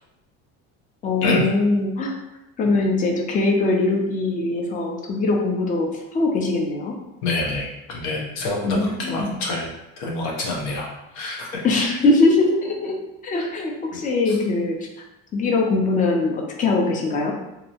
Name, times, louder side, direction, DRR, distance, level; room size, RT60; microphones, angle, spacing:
voice 1, 1.0-2.1 2.6-6.9 8.6-9.3 11.6-12.9 13.2-14.8 15.3-17.3, left 2 dB, 25° left, 1 dB, 0.4 m, -21 dB
voice 2, 7.2-9.7 10.0-12.0 13.4-13.5 14.3-14.4, left 2 dB, 85° left, -1 dB, 0.8 m, -27 dB
2.6 x 2.0 x 2.7 m, 0.90 s
cardioid pair, 135°, 33 cm